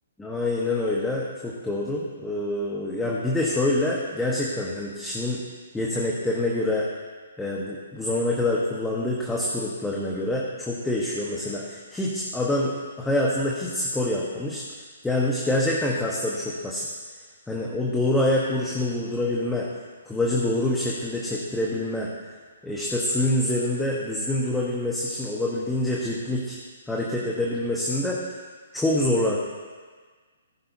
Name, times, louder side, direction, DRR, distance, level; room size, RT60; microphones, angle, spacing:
voice 1, 0.2-5.4 5.7-6.9 7.4-14.6 15.0-16.9 17.5-19.7 20.1-22.1 22.6-26.6 26.9-28.2 28.7-29.4, left 1 dB, 5° left, -4 dB, 1.2 m, -26 dB
15.5 x 9.9 x 2.8 m, 1.5 s
hypercardioid pair, 135°, 0 cm